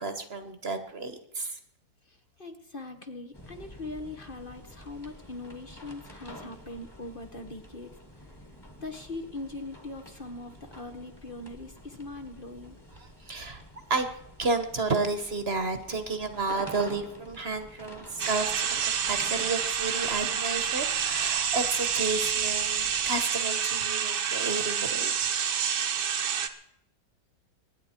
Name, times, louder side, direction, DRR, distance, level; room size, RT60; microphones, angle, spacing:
voice 1, 0.0-1.6 12.9-13.6 13.9-14.1 14.4-25.1, right 3 dB, 40° right, 8 dB, 1.3 m, -31 dB
voice 2, 2.4-7.9 8.8-12.7, left 2 dB, 35° left, 6 dB, 1.1 m, -41 dB
sound 1, 3.3-23.3, left 1 dB, 15° left, 1.7 m, -49 dB
sound 2, 18.2-26.5, right 8 dB, 75° right, 1.7 m, -28 dB
24.0 x 10.5 x 4.4 m, 0.76 s
omnidirectional pair, 1.9 m